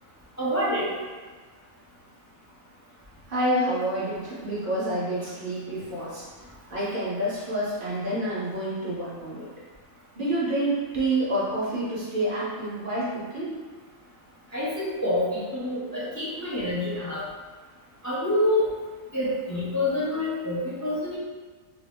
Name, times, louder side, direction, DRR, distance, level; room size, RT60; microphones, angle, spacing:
voice 1, 0.4-0.9 14.5-17.2 18.0-18.7 19.1-21.2, left 1 dB, 20° left, -9 dB, 0.5 m, -27 dB
voice 2, 3.3-6.3 6.7-9.5 10.1-13.6, right 1 dB, 45° right, -7 dB, 0.8 m, -28 dB
3.0 x 2.8 x 3.3 m, 1.4 s
omnidirectional pair, 1.5 m